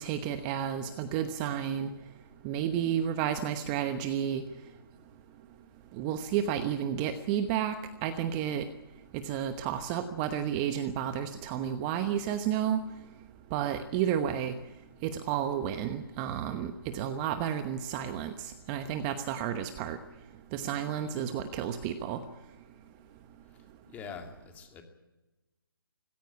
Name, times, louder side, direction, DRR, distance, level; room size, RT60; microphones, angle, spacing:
voice 1, 0.0-1.9 2.4-4.4 6.0-7.7 8.0-8.6 9.2-12.8 13.5-14.5 15.0-20.0 20.5-22.2, right 9 dB, 20° right, 9 dB, 1.0 m, -31 dB
voice 2, 23.5-24.8, left 6 dB, 10° left, 5 dB, 2.4 m, -45 dB
19.0 x 17.0 x 9.7 m, 1.1 s
figure-of-eight pair, 150°, 13 cm